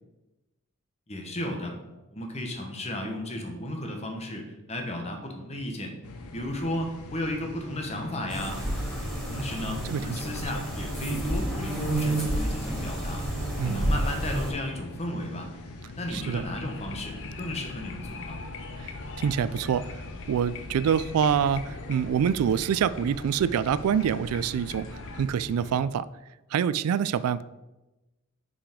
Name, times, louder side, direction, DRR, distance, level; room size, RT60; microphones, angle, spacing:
voice 1, 1.1-1.8 2.1-5.9 6.3-8.6 9.3-13.2 13.6-15.5 16.0-18.3, left 1 dB, 30° left, 3 dB, 1.1 m, -34 dB
sound 1, 6.0-25.8, left 2 dB, 85° left, 0.7 m, -43 dB
sound 2, 8.3-14.5, right 1 dB, 5° left, 2.5 m, -30 dB
voice 2, 13.6-13.9 16.1-16.4 18.8-18.9 19.2-19.8 20.3-24.9 25.2-26.1 26.5-27.4, right 8 dB, 80° right, 16 dB, 0.3 m, -25 dB
sound 3, 16.0-25.3, left 3 dB, 60° left, 0.7 m, -42 dB
5.8 x 4.9 x 5.0 m, 1.0 s
head